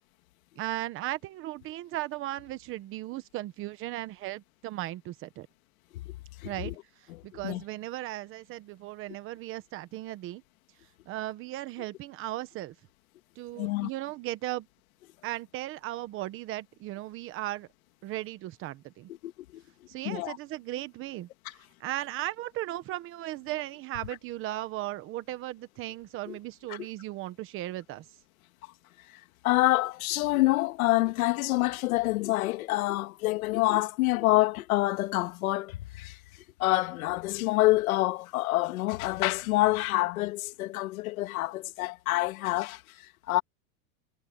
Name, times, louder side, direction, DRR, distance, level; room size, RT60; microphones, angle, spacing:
voice 1, 0.6-5.5 6.4-6.7 7.2-10.4 11.1-12.7 13.4-14.7 15.2-17.7 18.0-19.1 19.9-21.3 21.8-28.0, right 16 dB, 30° right, 1.1 m, -36 dB
voice 2, 6.4-6.7 7.1-7.6 13.6-13.9 19.1-19.6 20.0-20.4 26.3-26.4 26.7-26.9 28.6-28.7 29.0-43.4, left 19 dB, 80° left, 2.2 m, -27 dB
supercardioid pair, 170°, 42 cm